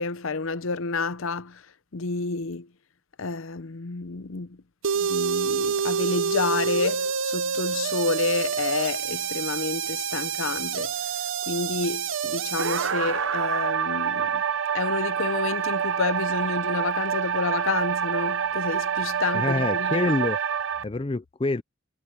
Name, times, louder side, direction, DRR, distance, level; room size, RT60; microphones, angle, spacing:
voice 1, 0.0-2.7 3.2-4.6 4.9-11.1 11.5-14.4 14.7-20.1, left 4 dB, 70° left, 0.7 m, -29 dB
sound 1, 4.8-20.8, right 7 dB, 65° right, 0.8 m, -27 dB
voice 2, 19.3-20.4 20.8-21.6, left 2 dB, 25° left, 0.5 m, -26 dB
head